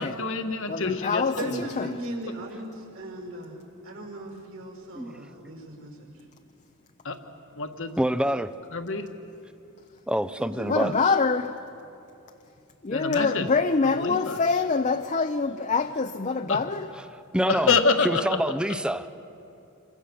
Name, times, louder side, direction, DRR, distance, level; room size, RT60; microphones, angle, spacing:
voice 1, 0.0-1.6 7.0-7.2 7.6-7.9 8.7-9.1 12.9-13.4 14.0-14.4 16.5-16.6 17.5-18.2, left 4 dB, 60° left, 1.5 m, -26 dB
voice 2, 0.7-2.0 10.7-11.5 12.8-16.9, left 4 dB, 35° left, 0.6 m, -25 dB
voice 3, 1.4-6.1 10.4-11.0, right 1 dB, 60° right, 5.5 m, -38 dB
voice 4, 8.0-8.5 10.1-10.9 17.3-17.7 18.0-19.1, equal, 5° right, 0.6 m, -26 dB
27.5 x 24.0 x 7.0 m
head